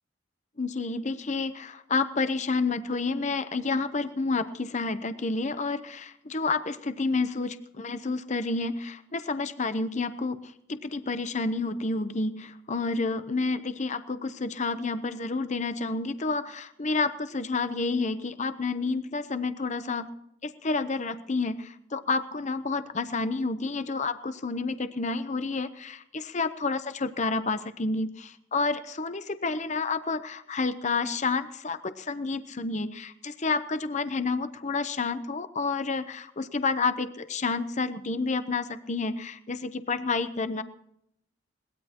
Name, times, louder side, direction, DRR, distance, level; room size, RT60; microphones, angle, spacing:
voice 1, 0.6-20.1 20.4-40.6, left 3 dB, 35° left, 11 dB, 0.8 m, -30 dB
22.0 x 19.0 x 3.0 m, 0.76 s
head